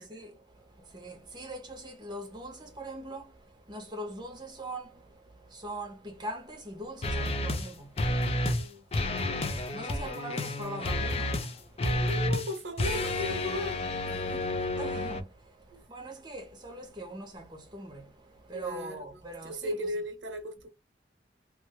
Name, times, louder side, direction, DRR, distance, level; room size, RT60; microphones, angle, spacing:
voice 1, 0.0-8.6 9.0-11.9 14.8-19.8, right 1 dB, 25° right, 0.9 m, -42 dB
sound 1, 7.0-7.7 8.0-8.7 8.9-15.2, left 1 dB, 35° left, 0.5 m, -30 dB
voice 2, 8.3-8.9 9.9-10.4 11.8-13.8 14.1-14.7 15.7-15.8 18.5-19.1 19.4-20.7, left 1 dB, 85° right, 0.8 m, -37 dB
3.0 x 2.3 x 3.0 m
head